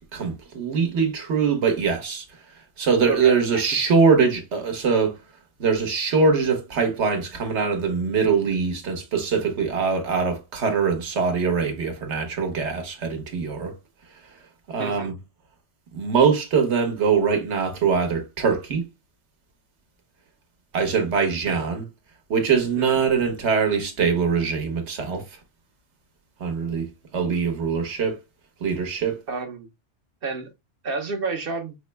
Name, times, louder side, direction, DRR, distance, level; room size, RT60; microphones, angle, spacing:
voice 1, 0.1-2.2 2.8-5.2 5.6-13.8 14.7-15.1 15.9-18.8 20.7-21.8 22.3-25.3 26.4-26.9 27.1-28.2 28.6-29.2, right 5 dB, 70° right, 1.3 m, -22 dB
voice 2, 3.1-3.6 14.8-15.1 21.4-21.6 22.8-23.1 29.3-29.7 30.2-30.5 30.8-31.7, right 4 dB, 55° right, 0.9 m, -31 dB
5.3 x 2.0 x 3.2 m
omnidirectional pair, 1.2 m